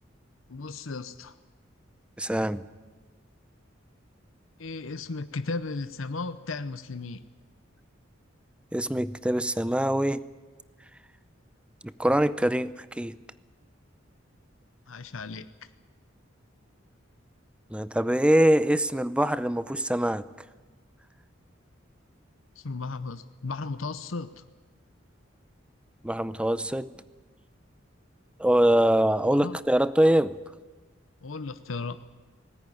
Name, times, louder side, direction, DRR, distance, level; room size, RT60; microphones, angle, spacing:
voice 1, 0.5-1.4 4.6-7.2 14.9-15.5 22.6-24.4 29.3-29.6 31.2-32.0, left 3 dB, 85° left, 0.8 m, -35 dB
voice 2, 2.2-2.6 8.7-10.2 12.0-13.2 17.7-20.3 26.0-26.9 28.4-30.4, right 1 dB, 5° right, 0.6 m, -23 dB
19.5 x 18.0 x 9.9 m
head